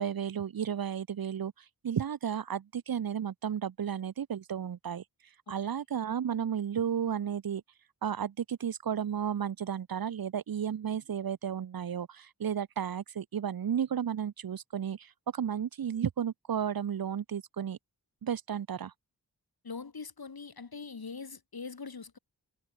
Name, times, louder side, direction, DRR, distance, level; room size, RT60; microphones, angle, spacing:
voice 1, 0.0-1.5 1.8-5.0 5.5-7.6 8.0-17.8 18.2-18.9, right 8 dB, 65° right, 0.6 m, -33 dB
voice 2, 19.6-22.2, left 5 dB, 65° left, 1.7 m, -42 dB
wide cardioid pair, 45°, 39 cm